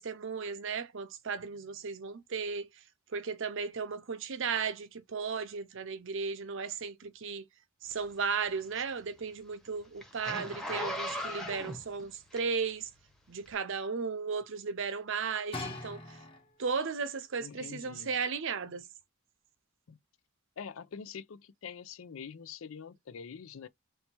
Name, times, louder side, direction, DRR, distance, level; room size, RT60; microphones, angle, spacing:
voice 1, 0.0-2.7 3.1-7.4 7.8-12.9 13.3-16.0 16.6-18.8, right 5 dB, 65° right, 0.6 m, -35 dB
Zipper (clothing), 7.9-12.8 13.4-13.5, left 1 dB, ahead, 1.0 m, -39 dB
sound 1, 15.5-16.8 17.6-17.7, left 2 dB, 25° left, 1.1 m, -41 dB
voice 2, 17.4-18.1 18.7-18.8 19.9-20.0 20.6-23.7, left 6 dB, 75° left, 0.5 m, -45 dB
3.3 x 2.8 x 4.4 m
head